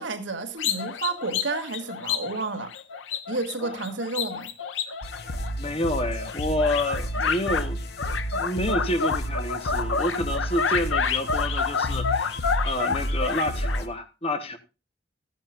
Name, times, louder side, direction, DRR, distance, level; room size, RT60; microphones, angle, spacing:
voice 1, 0.0-2.7 3.3-4.5, right 3 dB, 80° right, 1.6 m, -31 dB
sound 1, 0.6-5.8 6.2-7.6 8.0-13.8, left 5 dB, 90° left, 0.9 m, -29 dB
sound 2, 5.0-13.9, equal, 55° left, 1.1 m, -31 dB
voice 2, 5.6-7.8 8.3-14.6, left 1 dB, 30° left, 1.2 m, -29 dB
14.0 x 10.5 x 2.5 m
head